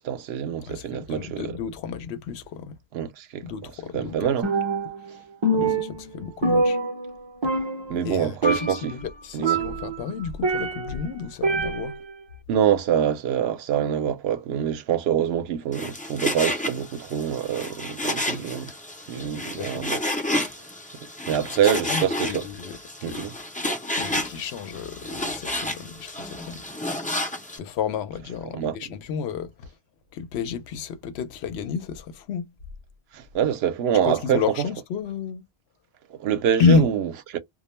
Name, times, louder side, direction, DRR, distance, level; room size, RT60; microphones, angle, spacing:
voice 1, 0.0-1.5 2.9-3.5 3.9-4.5 5.6-5.7 7.9-9.0 9.3-9.6 12.5-18.7 19.1-20.0 21.3-22.5 23.0-23.3 28.5-29.0 33.1-34.7 36.1-37.4, right 9 dB, 80° right, 0.8 m, -25 dB
voice 2, 0.7-2.7 3.4-4.3 5.5-6.8 7.4-7.5 8.0-12.0 19.2-19.9 21.5-23.3 23.9-26.6 27.5-29.7 30.1-32.5 34.1-35.5 36.6-36.9, left 5 dB, 90° left, 0.8 m, -30 dB
Percussion, 4.4-5.1 5.4-7.2 7.4-8.1 8.4-8.9 9.4-11.0 11.4-12.1, right 2 dB, 35° right, 0.6 m, -25 dB
Frying (food), 15.7-27.6, left 1 dB, 15° left, 0.3 m, -31 dB
2.2 x 2.1 x 3.0 m
omnidirectional pair, 1.1 m